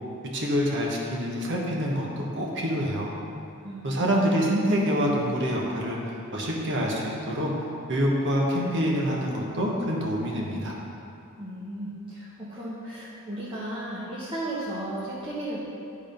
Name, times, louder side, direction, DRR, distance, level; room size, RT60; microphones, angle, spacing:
voice 1, 0.3-3.1 3.8-7.5 7.9-10.7, equal, 60° right, -2 dB, 1.3 m, -26 dB
voice 2, 11.4-15.6, right 1 dB, 25° right, -9 dB, 1.0 m, -35 dB
11.0 x 3.7 x 5.2 m, 2.8 s
head